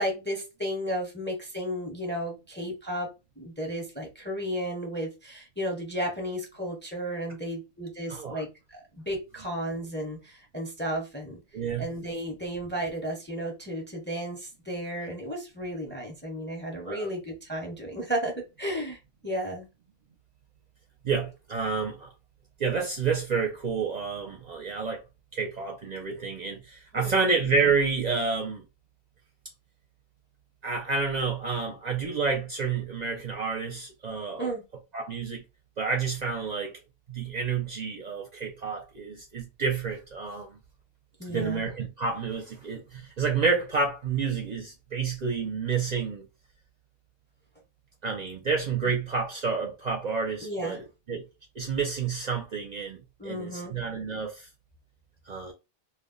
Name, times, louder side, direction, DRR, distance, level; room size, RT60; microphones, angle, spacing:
voice 1, 0.0-3.1 3.4-11.4 11.8-19.7 26.9-27.2 34.4-34.6 41.2-41.6 50.4-50.8 53.2-53.8, equal, 15° left, 0.5 m, -33 dB
voice 2, 8.1-8.4 11.5-11.9 16.8-17.1 21.0-22.1 22.6-25.0 25.3-28.6 30.6-34.5 34.9-35.4 35.8-36.7 37.1-40.6 41.3-46.2 48.0-50.8 51.1-51.3 51.6-54.5 55.3-55.5, right 5 dB, 55° right, 0.6 m, -29 dB
2.3 x 2.1 x 3.6 m
omnidirectional pair, 1.0 m